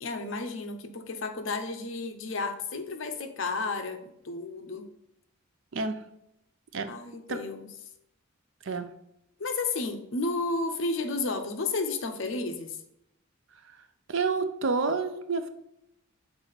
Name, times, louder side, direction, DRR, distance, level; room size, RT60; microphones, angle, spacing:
voice 1, 0.0-4.9 6.9-7.7 9.4-12.8, left 3 dB, 65° left, 7 dB, 0.7 m, -32 dB
voice 2, 14.1-15.5, right 4 dB, 60° right, 9 dB, 0.5 m, -28 dB
5.9 x 4.2 x 4.0 m, 0.80 s
head